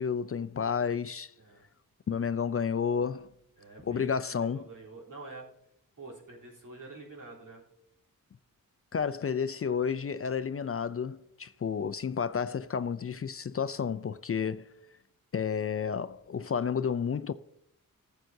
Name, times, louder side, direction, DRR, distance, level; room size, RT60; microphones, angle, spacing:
voice 1, 0.0-1.3 2.1-3.3 3.9-4.7 8.9-14.7 15.3-17.3, left 6 dB, 45° left, 0.4 m, -31 dB
voice 2, 3.6-5.5 6.0-7.6, right 3 dB, 65° right, 3.4 m, -47 dB
14.5 x 7.7 x 2.7 m
wide cardioid pair, 80°, 34 cm